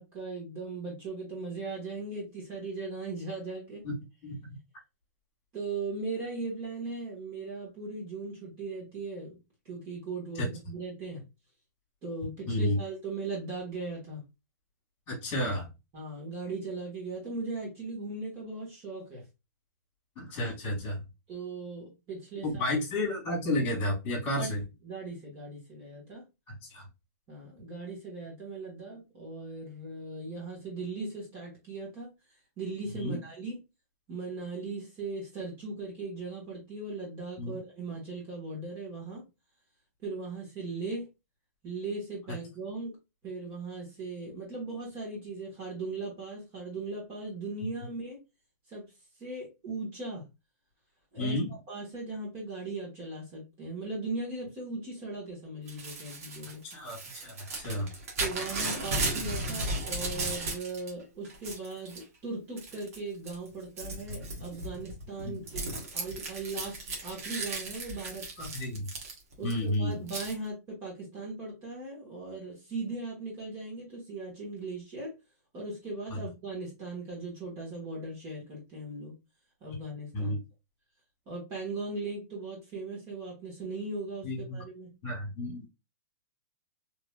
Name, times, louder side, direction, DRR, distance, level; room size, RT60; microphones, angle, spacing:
voice 1, 0.0-3.8 5.5-11.2 12.0-14.2 15.9-19.2 21.3-22.6 24.4-24.5 24.8-26.2 27.3-32.1 32.6-33.6 34.1-39.2 40.0-41.1 41.6-42.9 43.2-48.2 48.7-48.8 49.2-50.2 51.1-51.4 51.7-56.6 58.2-68.5 69.4-75.1 75.5-79.1 79.6-80.3 81.3-84.9, right 3 dB, 25° right, 1.4 m, -38 dB
voice 2, 12.5-12.8 15.1-15.7 20.2-21.0 22.4-24.6 26.7-26.8 32.9-33.2 37.4-37.6 51.2-51.5 56.6-57.9 65.2-65.4 68.4-68.9 69.4-70.1 76.1-76.2 80.1-80.4 84.2-84.6 85.0-85.7, left 1 dB, 20° left, 1.7 m, -31 dB
Crumpling crinkling / Tearing, 55.7-60.9 61.2-62.0 62.6-63.0 63.3-69.5 70.1-70.3, right 2 dB, 55° right, 1.3 m, -35 dB
3.2 x 2.9 x 2.3 m
hypercardioid pair, 165°, 10 cm